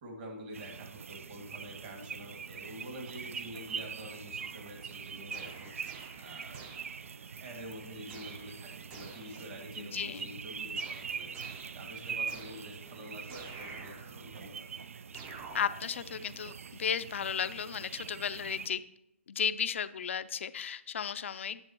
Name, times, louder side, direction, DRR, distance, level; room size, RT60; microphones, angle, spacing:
voice 1, 0.0-5.7 6.2-6.7 7.4-11.3 11.7-14.7, right 1 dB, 40° right, 1 dB, 2.1 m, -47 dB
sound 1, 0.5-18.7, right 6 dB, 85° right, 0.4 m, -43 dB
sound 2, 4.4-4.9 5.3-7.3 8.1-9.6 10.8-13.0 13.3-14.4 15.1-16.2, right 4 dB, 20° right, 0.6 m, -50 dB
voice 2, 9.8-10.3 15.5-18.8 19.3-21.6, left 7 dB, 65° left, 13 dB, 0.4 m, -34 dB
9.7 x 7.9 x 3.0 m, 0.83 s
hypercardioid pair, 155°, 7 cm